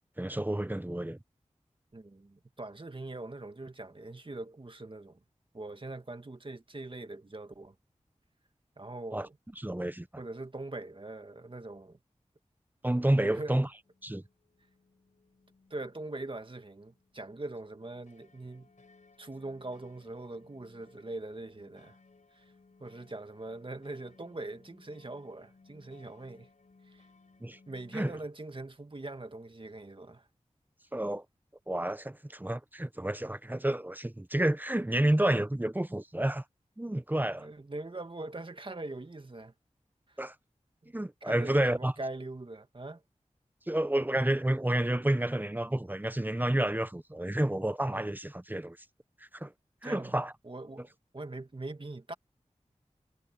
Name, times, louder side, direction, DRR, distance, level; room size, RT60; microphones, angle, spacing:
voice 1, 0.2-1.2 9.1-9.3 9.6-10.1 12.8-13.7 14.0-14.2 27.4-27.6 27.9-28.1 30.9-31.2 31.7-36.4 36.8-37.5 40.2-40.3 40.9-41.9 43.7-48.8 49.3-49.5 49.8-50.3, right 1 dB, 15° right, 1.0 m, -30 dB
voice 2, 1.9-5.2 5.5-7.7 8.8-9.4 10.2-12.0 13.2-13.7 15.7-18.7 19.2-22.0 22.3-22.4 22.8-26.5 26.9-27.0 27.7-30.3 37.4-39.5 40.8-40.9 41.2-43.0 49.8-50.2 50.4-52.1, right 2 dB, 45° right, 2.0 m, -42 dB
sound 1, 13.8-28.2, left 3 dB, 85° left, 5.4 m, -63 dB
wide cardioid pair, 55°, 13 cm